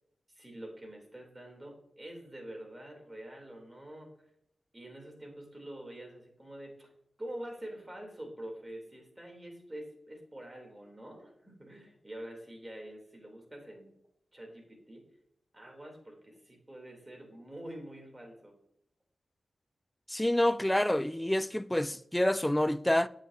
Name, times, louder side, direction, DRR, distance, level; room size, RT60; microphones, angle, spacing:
voice 1, 0.3-4.1 4.7-6.9 7.2-13.9 14.3-15.0 15.5-18.5, right 1 dB, 20° right, 3.1 m, -46 dB
voice 2, 20.1-23.1, left 1 dB, 10° left, 0.3 m, -27 dB
9.1 x 7.7 x 2.7 m
cardioid pair, 65°, 0 cm